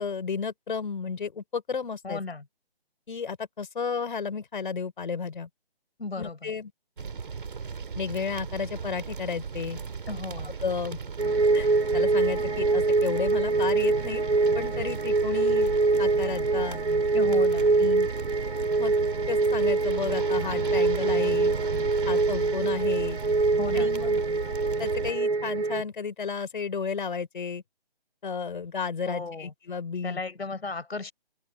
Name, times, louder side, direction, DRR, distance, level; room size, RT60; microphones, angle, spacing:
voice 1, 0.0-2.2 3.1-5.5 6.2-6.7 7.9-9.8 10.4-11.0 11.5-14.2 14.5-15.7 16.0-16.8 17.4-17.5 17.8-18.1 18.8-18.9 19.3-21.5 22.1-23.2 23.7-24.2 24.8-27.6 28.2-30.2, left 5 dB, 55° left, 5.1 m, -32 dB
voice 2, 2.0-2.4 6.0-6.5 10.1-10.6 17.1-17.8 23.6-23.9 29.1-29.5 30.0-31.1, left 3 dB, 85° left, 5.0 m, -35 dB
sound 1, 7.0-25.1, right 5 dB, 55° right, 3.1 m, -36 dB
sound 2, 11.2-25.8, right 3 dB, 85° right, 2.3 m, -24 dB
open air
hypercardioid pair, 165°, 31 cm